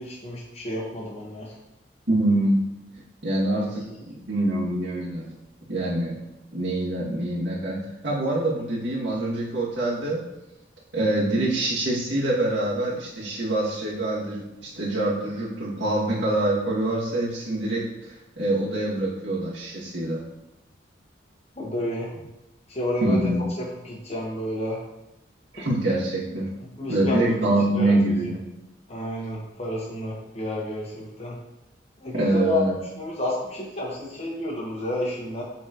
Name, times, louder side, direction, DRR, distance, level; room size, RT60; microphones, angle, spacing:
voice 1, 0.0-1.5 3.6-3.7 21.6-22.1 22.7-24.8 25.6-25.7 26.8-27.4 27.7-28.1 28.9-31.4 32.0-32.6 33.0-35.4, left 1 dB, 35° left, -2 dB, 1.5 m, -30 dB
voice 2, 2.1-2.6 3.2-5.3 5.7-6.2 6.5-10.2 10.9-20.2 23.0-23.5 25.5-26.5 26.9-28.4 32.1-32.8, right 1 dB, 65° right, -8 dB, 2.4 m, -25 dB
8.0 x 4.3 x 3.1 m, 0.95 s
head